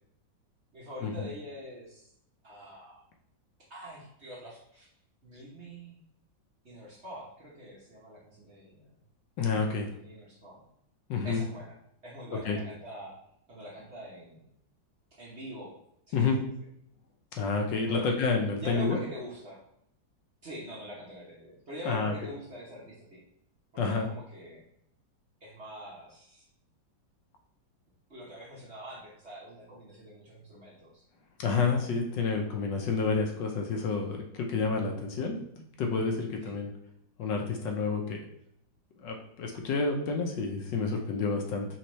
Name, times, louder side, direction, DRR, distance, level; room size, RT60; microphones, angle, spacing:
voice 1, 0.7-2.1 2.4-3.0 3.7-4.9 5.2-6.0 6.6-9.0 9.9-10.6 11.2-11.8 12.0-13.2 13.5-14.5 15.1-15.7 16.1-16.5 17.9-18.1 18.5-19.6 20.4-23.2 23.7-24.6 25.4-26.4 28.1-31.0 34.5-34.7 36.4-36.6, equal, 45° right, -4 dB, 1.1 m, -44 dB
voice 2, 9.4-9.9 11.1-11.4 12.4-12.6 16.1-16.4 17.3-19.0 21.9-22.1 23.8-24.1 31.4-35.4 35.8-36.7 37.2-38.2 39.0-41.7, left 4 dB, 75° left, 2 dB, 1.4 m, -29 dB
4.4 x 3.7 x 3.1 m, 0.74 s
omnidirectional pair, 2.1 m